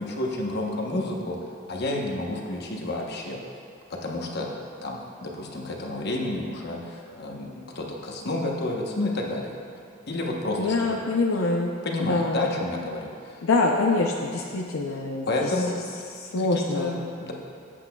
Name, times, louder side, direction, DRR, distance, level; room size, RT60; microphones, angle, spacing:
voice 1, 0.0-3.4 3.9-4.5 4.8-9.5 10.1-11.0 11.8-13.4 15.3-15.8 16.5-17.3, left 2 dB, 55° left, 0 dB, 1.0 m, -30 dB
voice 2, 10.6-11.7 12.0-12.5 13.4-15.6 16.2-17.0, left 3 dB, 80° left, 0 dB, 0.6 m, -25 dB
13.5 x 8.3 x 2.3 m, 2.4 s
head